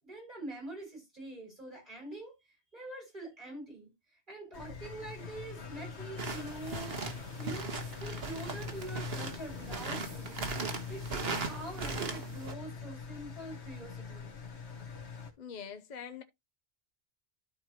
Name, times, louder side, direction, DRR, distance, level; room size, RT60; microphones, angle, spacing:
voice 1, 0.0-3.9 4.3-7.0 7.4-7.7 8.0-10.6 10.9-14.3, right 1 dB, 45° right, 6.1 m, -45 dB
Engine, 4.5-15.3, left 5 dB, 90° left, 1.7 m, -43 dB
sound 1, 6.2-12.5, right 4 dB, 65° right, 1.6 m, -39 dB
voice 2, 15.4-16.2, left 7 dB, 45° left, 0.9 m, -43 dB
13.0 x 4.7 x 2.9 m
omnidirectional pair, 1.1 m